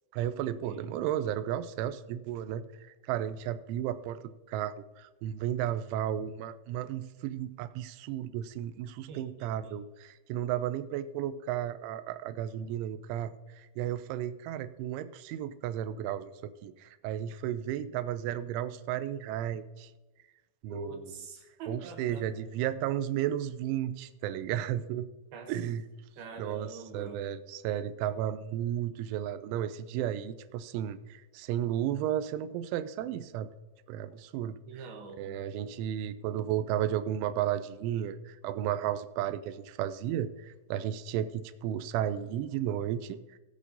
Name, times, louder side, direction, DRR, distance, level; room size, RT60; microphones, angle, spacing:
voice 1, 0.1-19.9 20.6-21.1 21.7-25.1 25.5-25.8 26.4-33.5 33.9-34.6 35.2-43.4, right 11 dB, 90° right, 12 dB, 3.0 m, -33 dB
voice 2, 9.1-9.8 20.7-22.3 25.3-25.5 26.2-27.3 34.7-35.4, right 3 dB, 70° right, 4 dB, 2.4 m, -44 dB
19.0 x 8.1 x 2.7 m, 1.1 s
omnidirectional pair, 5.4 m